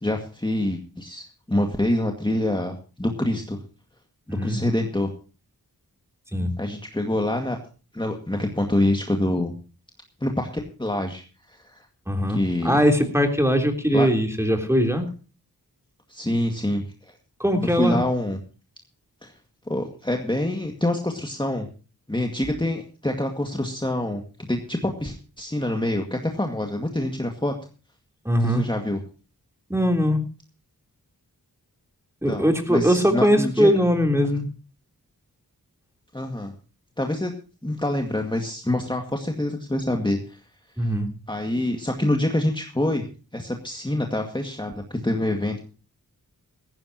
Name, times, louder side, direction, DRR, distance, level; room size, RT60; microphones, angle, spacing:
voice 1, 0.0-3.6 4.3-5.1 6.6-7.6 7.9-9.5 10.2-11.9 12.3-12.8 13.9-14.1 16.1-16.8 17.6-18.4 19.2-19.3 19.7-21.7 22.1-27.5 28.4-29.0 32.3-33.7 36.1-36.5 37.0-37.3 37.6-40.4 40.8-40.9 41.3-43.1 43.3-45.6, left 1 dB, 10° left, 3 dB, 2.0 m, -26 dB
voice 2, 4.3-4.6 6.3-6.5 12.1-15.1 17.4-18.0 28.2-28.7 29.7-30.2 32.2-34.5 40.8-41.1, equal, 5° right, 4 dB, 3.4 m, -21 dB
17.5 x 15.5 x 2.9 m, 0.36 s
wide cardioid pair, 75°, 37 cm